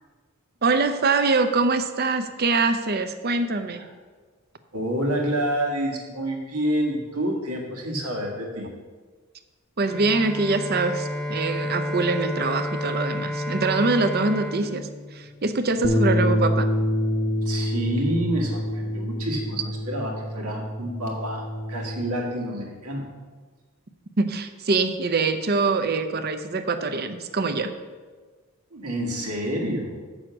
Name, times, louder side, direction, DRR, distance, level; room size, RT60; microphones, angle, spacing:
voice 1, 0.6-3.9 9.8-16.7 24.2-27.7, right 3 dB, 45° right, 9 dB, 0.6 m, -24 dB
voice 2, 4.7-8.7 17.4-23.1 28.7-29.9, equal, 90° right, 0 dB, 1.8 m, -28 dB
Bowed string instrument, 9.8-15.8, left 1 dB, 5° left, 1.1 m, -31 dB
sound 1, 15.8-22.1, equal, 35° left, 0.7 m, -26 dB
7.6 x 6.3 x 6.1 m, 1.4 s
head